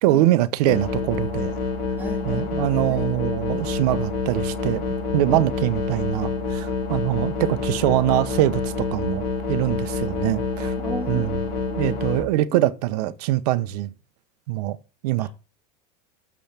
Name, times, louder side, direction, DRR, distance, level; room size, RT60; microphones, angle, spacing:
voice 1, 0.0-1.6 2.2-10.7 11.1-11.4 11.8-13.9 14.5-14.8 15.0-15.3, right 15 dB, 80° right, 0.8 m, -23 dB
sound 1, 0.6-12.2, left 4 dB, 45° left, 3.8 m, -27 dB
voice 2, 2.0-3.0 5.3-5.4 10.6-11.9 12.5-12.7 15.2-15.3, right 1 dB, 10° right, 2.3 m, -36 dB
7.1 x 5.3 x 5.8 m
cardioid pair, 165°, 20 cm